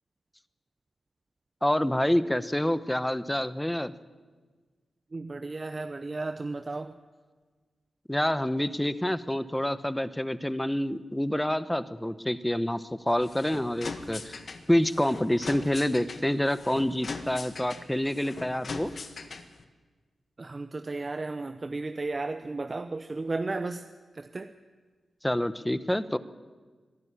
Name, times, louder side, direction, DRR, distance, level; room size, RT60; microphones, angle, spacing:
voice 1, 1.6-3.9 8.1-14.4 14.7-18.9 25.2-26.2, left 1 dB, 10° left, 14 dB, 0.9 m, -27 dB
voice 2, 5.1-6.9 20.4-23.9 24.1-24.5, right 3 dB, 35° right, 8 dB, 0.8 m, -34 dB
sound 1, 13.1-19.6, left 3 dB, 55° left, 1.6 m, -40 dB
23.5 x 12.0 x 10.0 m, 1.4 s
cardioid pair, 80°, 0 cm